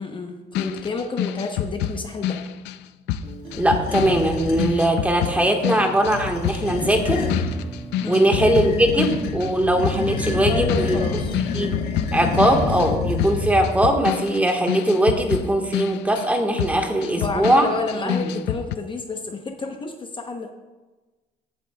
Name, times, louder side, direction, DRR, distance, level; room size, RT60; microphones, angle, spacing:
voice 1, 0.0-2.4 8.0-8.3 10.1-11.4 17.1-20.5, left 3 dB, 30° left, 4 dB, 0.8 m, -30 dB
sound 1, 0.5-9.6 9.8-18.8, left 10 dB, 85° left, 0.5 m, -28 dB
Acoustic guitar, 3.2-11.2, right 3 dB, 35° right, 1.6 m, -40 dB
sound 2, 3.5-4.8 5.9-7.5 8.3-13.8, left 4 dB, 70° left, 1.2 m, -28 dB
voice 2, 3.6-7.3 8.1-11.2 11.5-11.7 12.1-17.6 18.0-18.3, right 1 dB, 10° right, 2 dB, 1.4 m, -20 dB
15.5 x 8.1 x 2.3 m, 1.2 s
cardioid pair, 110°, 17 cm